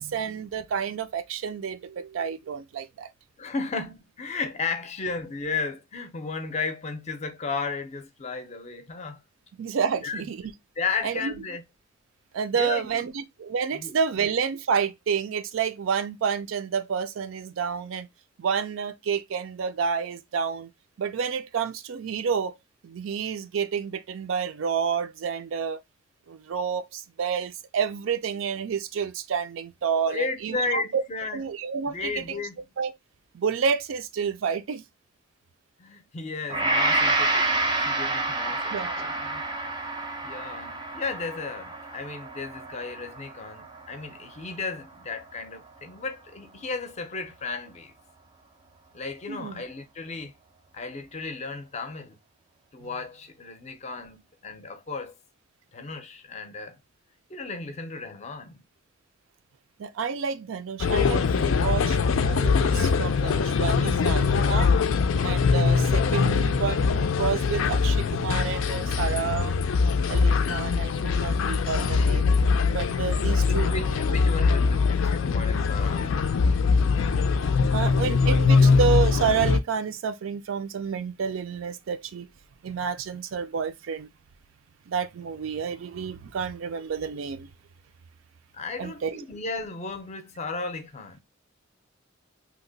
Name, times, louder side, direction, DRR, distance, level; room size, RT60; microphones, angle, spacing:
voice 1, 0.0-3.1 9.6-10.4 11.0-11.3 12.3-18.1 18.4-20.7 21.0-22.5 22.8-25.8 26.3-31.0 31.3-32.4 32.8-32.9 33.3-34.8 38.7-39.0 49.3-49.6 52.8-52.9 59.8-64.7 65.2-69.5 70.1-72.3 72.6-73.7 77.7-82.3 82.6-84.1 84.9-87.5 88.8-89.2, right 6 dB, 80° right, 0.4 m, -29 dB
voice 2, 3.4-9.2 10.0-10.3 10.8-11.6 12.6-13.1 13.7-14.0 29.9-31.4 31.9-32.6 35.8-39.4 40.2-47.9 48.9-50.3 50.7-52.2 52.7-55.2 55.7-56.8 57.3-58.6 73.4-76.4 88.5-91.2, left 4 dB, 35° left, 0.5 m, -34 dB
Gong, 36.5-44.8 45.3-45.4, right 2 dB, 20° right, 0.5 m, -29 dB
sound 1, 60.8-79.6, left 5 dB, 90° left, 0.4 m, -22 dB
2.8 x 2.1 x 3.9 m
head